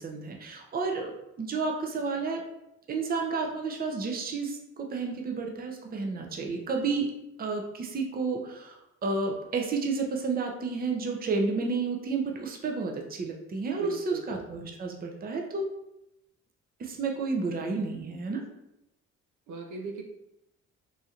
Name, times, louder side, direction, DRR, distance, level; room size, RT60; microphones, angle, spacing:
voice 1, 0.0-2.4 2.9-7.1 7.4-15.7 16.8-18.4, right 4 dB, 30° right, 2 dB, 0.5 m, -31 dB
voice 2, 13.7-14.2 19.5-20.0, right 4 dB, 75° right, 3 dB, 0.6 m, -38 dB
3.0 x 2.8 x 2.4 m, 0.86 s
cardioid pair, 90°, 30 cm